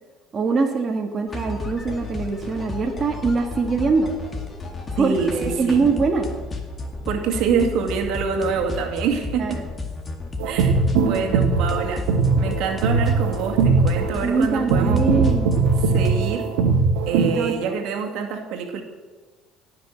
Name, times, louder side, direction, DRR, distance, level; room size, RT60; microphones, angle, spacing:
voice 1, 0.3-4.1 4.9-6.3 9.4-9.5 14.2-15.5 17.4-17.7, right 4 dB, 30° right, 2 dB, 1.5 m, -23 dB
sound 1, 1.3-16.1, left 3 dB, 25° left, 2.0 m, -33 dB
voice 2, 5.0-5.9 7.1-9.6 10.4-12.0 12.4-15.1 15.8-16.5 17.1-18.8, right 6 dB, 70° right, 2 dB, 2.1 m, -26 dB
sound 2, 10.4-17.4, right 4 dB, 85° right, 1.8 m, -20 dB
17.5 x 6.0 x 7.4 m, 1.3 s
supercardioid pair, 105°, 0 cm